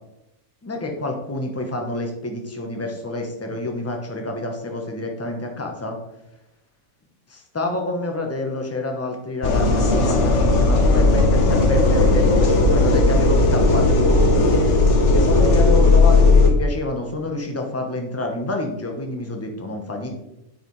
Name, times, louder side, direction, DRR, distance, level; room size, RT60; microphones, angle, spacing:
voice 1, 0.6-6.0 7.3-14.5 15.0-20.1, left 2 dB, 15° left, 2 dB, 0.8 m, -28 dB
sound 1, 9.4-16.5, left 2 dB, 60° left, 1.2 m, -16 dB
8.8 x 4.9 x 3.2 m, 0.89 s
omnidirectional pair, 1.4 m